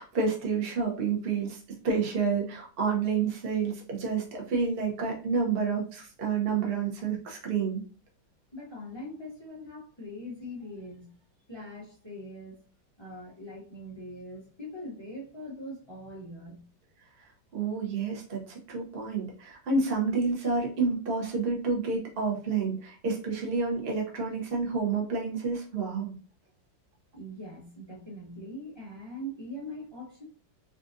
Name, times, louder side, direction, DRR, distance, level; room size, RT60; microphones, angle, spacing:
voice 1, 0.0-1.6 1.8-7.8 17.5-26.2, right 4 dB, 45° right, 0 dB, 0.8 m, -29 dB
voice 2, 8.5-11.2 11.5-12.6 13.0-16.6 27.1-30.2, equal, 45° left, -5 dB, 0.3 m, -42 dB
3.7 x 2.5 x 2.5 m, 0.39 s
omnidirectional pair, 2.0 m